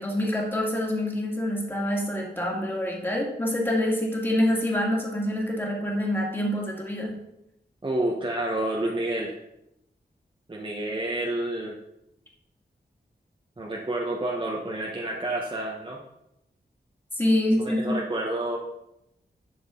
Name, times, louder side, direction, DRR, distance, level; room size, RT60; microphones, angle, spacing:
voice 1, 0.0-7.1 17.2-18.0, left 1 dB, 10° left, -2 dB, 2.4 m, -26 dB
voice 2, 7.8-9.4 10.5-11.8 13.6-16.0 17.6-18.6, right 1 dB, 30° right, -2 dB, 1.1 m, -29 dB
11.0 x 6.3 x 3.9 m, 0.84 s
wide cardioid pair, 105°, 18 cm